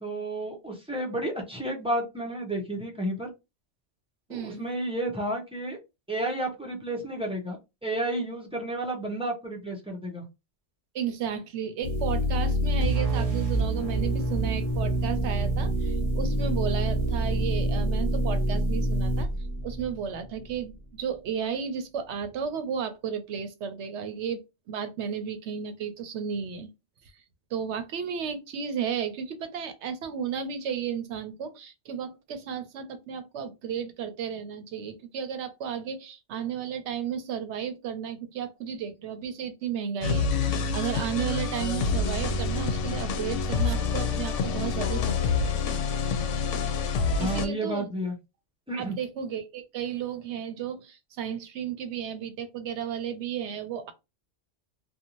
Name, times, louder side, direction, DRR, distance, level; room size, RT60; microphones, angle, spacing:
voice 1, 0.0-3.3 4.3-5.8 6.1-7.6 7.8-10.2 47.1-48.1 48.7-49.0, right 1 dB, 5° right, 0.6 m, -31 dB
voice 2, 4.3-4.7 10.9-19.3 19.6-26.7 27.0-27.1 27.5-45.6 47.2-47.9 48.8-53.9, right 7 dB, 75° right, 0.9 m, -33 dB
sound 1, 11.8-20.5, right 1 dB, 30° right, 1.1 m, -26 dB
sound 2, 40.0-47.5, left 4 dB, 85° left, 0.9 m, -27 dB
2.6 x 2.3 x 2.9 m
omnidirectional pair, 1.2 m